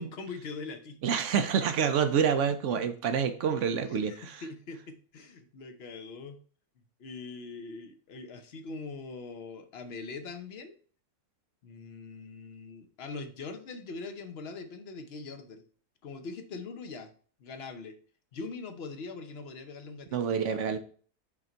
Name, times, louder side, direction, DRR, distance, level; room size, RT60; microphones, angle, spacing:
voice 1, 0.0-1.0 3.9-6.4 7.0-10.8 11.6-15.6 16.0-17.1 17.4-18.0 18.3-20.2, left 4 dB, 50° left, 7 dB, 0.8 m, -42 dB
voice 2, 1.0-4.1 20.1-20.8, right 7 dB, 65° right, 9 dB, 0.8 m, -27 dB
5.7 x 3.9 x 4.4 m, 0.43 s
omnidirectional pair, 1.7 m